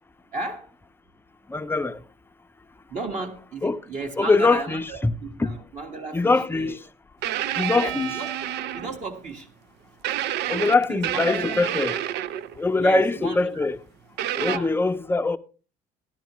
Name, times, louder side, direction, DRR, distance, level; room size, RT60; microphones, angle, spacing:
voice 1, 0.3-0.7 2.9-6.8 7.7-9.5 10.9-11.6 12.8-13.7 14.3-14.7, right 3 dB, 45° right, 1.5 m, -34 dB
voice 2, 1.5-2.0 3.6-3.8 4.2-5.1 5.4-5.5 6.1-6.8 7.6-8.1 10.5-11.9 12.6-13.8 14.3-15.4, left 3 dB, 15° left, 0.5 m, -22 dB
sound 1, 7.2-9.1 10.0-12.6 14.2-14.6, right 12 dB, 80° right, 0.5 m, -29 dB
14.5 x 11.0 x 3.0 m
cardioid pair, 110°, 17 cm